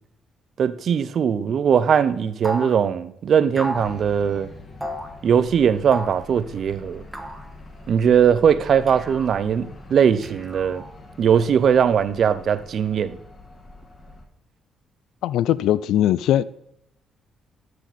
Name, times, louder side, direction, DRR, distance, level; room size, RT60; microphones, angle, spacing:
voice 1, 0.6-4.5 5.2-7.0 7.9-10.8 11.2-13.2, right 7 dB, 60° right, 0.6 m, -20 dB
sound 1, 2.4-2.8 3.6-3.9 4.8-5.1 5.9-6.2 7.1-7.5 8.9-9.4 10.2-10.9, right 1 dB, 10° right, 1.4 m, -32 dB
sound 2, 3.7-14.3, left 2 dB, 35° left, 1.8 m, -44 dB
voice 2, 15.2-16.4, left 12 dB, 85° left, 0.3 m, -20 dB
13.0 x 6.5 x 4.2 m
cardioid pair, 90°, 0 cm